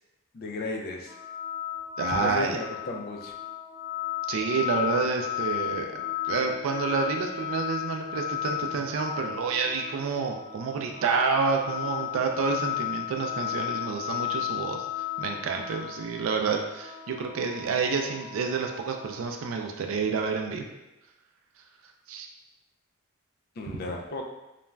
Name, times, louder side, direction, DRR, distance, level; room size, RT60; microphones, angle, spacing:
voice 1, 0.3-1.2 2.2-3.3 23.6-24.2, left 2 dB, 45° left, 2 dB, 0.3 m, -34 dB
sound 1, 1.1-19.3, left 12 dB, 15° right, 0.5 m, -34 dB
voice 2, 2.0-2.6 4.3-6.0 6.3-14.9 15.2-20.7 22.1-22.3, right 5 dB, 70° right, 3 dB, 0.3 m, -29 dB
2.4 x 2.1 x 3.1 m, 0.99 s
head